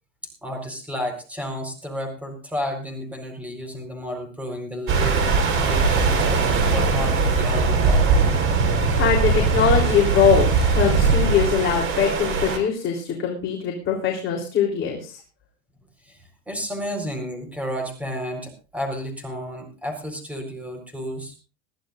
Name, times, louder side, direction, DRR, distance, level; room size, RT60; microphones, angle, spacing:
voice 1, 0.4-8.1 16.0-16.2 16.5-21.4, equal, 5° right, 4 dB, 4.4 m, -32 dB
sound 1, 4.9-12.6, right 4 dB, 30° right, 4.3 m, -20 dB
voice 2, 9.0-15.2, left 7 dB, 30° left, 0 dB, 3.6 m, -22 dB
21.5 x 14.5 x 2.6 m, 0.34 s
supercardioid pair, 135°, 39 cm